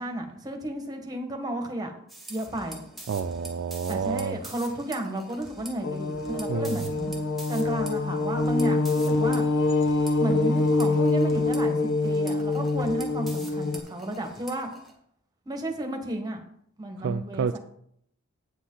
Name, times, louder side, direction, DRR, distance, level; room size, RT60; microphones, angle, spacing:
voice 1, 0.0-1.9 2.3-2.8 3.9-7.2 7.5-9.4 10.2-14.7 15.4-16.4 16.8-17.6, right 1 dB, 20° right, 3 dB, 1.4 m, -33 dB
sound 1, 2.1-14.9, right 1 dB, ahead, 1.9 m, -46 dB
voice 2, 3.1-4.4 6.5-6.9 17.0-17.6, right 6 dB, 55° right, 10 dB, 0.3 m, -29 dB
sound 2, 5.8-13.8, left 2 dB, 55° left, 0.7 m, -25 dB
8.5 x 8.2 x 3.9 m, 0.68 s
head